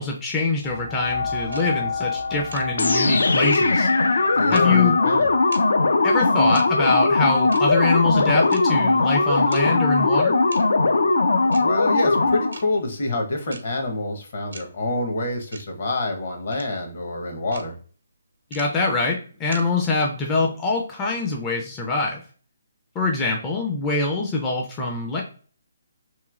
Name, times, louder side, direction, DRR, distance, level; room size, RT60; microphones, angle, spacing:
voice 1, 0.0-3.9 4.5-5.0 6.0-10.4 18.5-22.2 23.0-25.2, left 3 dB, 15° left, -1 dB, 0.4 m, -24 dB
sound 1, 0.6-9.9 10.5-10.6, left 5 dB, 70° left, 1.3 m, -33 dB
sound 2, 1.5-1.6 2.5-2.6 3.5-3.6 4.5-4.6 5.5-5.6 6.5-6.6 7.5-7.6 8.5-8.6 9.5-9.6 10.5-10.6 11.5-11.6 12.5-12.6 13.5-13.6 14.5-14.6 15.5-15.6 16.5-16.6 17.5-17.6 18.5-18.6 19.5-19.6, right 3 dB, 80° right, 0.7 m, -38 dB
sound 3, 2.8-12.6, left 3 dB, 85° left, 0.4 m, -19 dB
voice 2, 4.3-5.3 11.5-17.7, left 2 dB, 50° left, 2 dB, 0.9 m, -27 dB
3.0 x 2.7 x 2.4 m, 0.42 s
hypercardioid pair, 165°, 0 cm